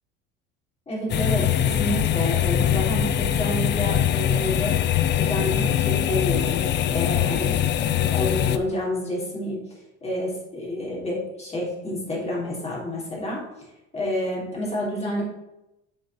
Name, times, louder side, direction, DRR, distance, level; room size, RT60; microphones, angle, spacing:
voice 1, 0.9-4.7 5.2-7.6 8.0-9.6 10.0-13.4 13.9-15.2, left 1 dB, 20° left, -4 dB, 3.5 m, -29 dB
sound 1, 1.1-8.6, left 10 dB, 40° left, 0.5 m, -22 dB
7.4 x 4.6 x 6.2 m, 0.90 s
cardioid pair, 125°, 29 cm